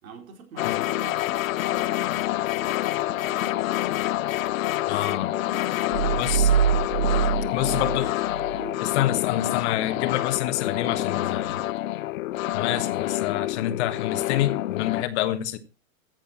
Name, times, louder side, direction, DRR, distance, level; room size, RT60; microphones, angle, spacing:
voice 1, 0.0-3.6 4.8-6.4 7.0-8.2 8.5-9.0 9.7-9.9 11.0-11.5, right 4 dB, 75° right, 4.2 m, -46 dB
sound 1, 0.6-15.0, left 15 dB, 75° left, 0.6 m, -27 dB
Telephone, 3.0-8.0, right 16 dB, 25° right, 2.3 m, -49 dB
voice 2, 4.9-5.3 6.2-6.5 7.5-8.1 8.8-11.6 12.5-15.6, left 13 dB, 55° left, 1.4 m, -27 dB
sound 2, 5.9-8.7, right 9 dB, 50° right, 1.1 m, -24 dB
14.5 x 6.8 x 4.3 m
hypercardioid pair, 130°, 41 cm